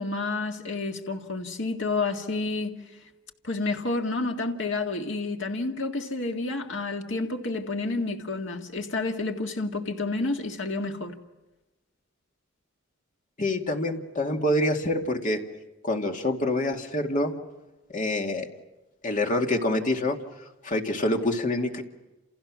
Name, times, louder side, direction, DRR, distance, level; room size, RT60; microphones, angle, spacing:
voice 1, 0.0-2.8 3.4-11.2, left 3 dB, 65° left, 2.0 m, -30 dB
voice 2, 13.4-15.4 15.8-17.3 17.9-18.5 19.0-20.2 20.6-21.8, left 1 dB, 40° left, 2.3 m, -26 dB
29.5 x 29.0 x 6.3 m
head